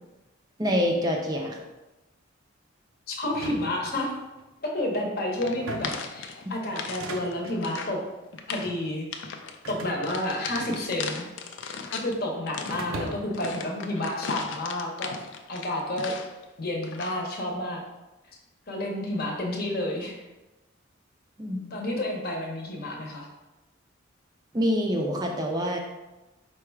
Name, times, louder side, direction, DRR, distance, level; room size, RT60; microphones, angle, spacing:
voice 1, 0.6-1.6 6.5-6.6 21.4-21.7 24.5-25.8, equal, 20° right, 1 dB, 0.4 m, -26 dB
voice 2, 3.1-4.1 4.6-8.0 8.5-9.1 9.7-11.3 11.9-15.2 15.5-16.2 16.6-17.8 18.7-20.2 21.7-23.3, left 1 dB, 50° left, 0 dB, 0.8 m, -30 dB
sound 1, 3.3-4.5 5.5-6.1 6.8-7.6 8.4-8.8 9.6-11.2 11.4-12.2 12.7-13.5, right 2 dB, 90° right, 0.6 m, -40 dB
sound 2, 5.4-7.0 7.3-8.0 8.3-8.7 9.1-9.6 10.0-12.1 12.5-16.4 16.8-17.3, left 5 dB, 70° left, 0.4 m, -37 dB
4.7 x 2.3 x 4.5 m, 1.1 s
head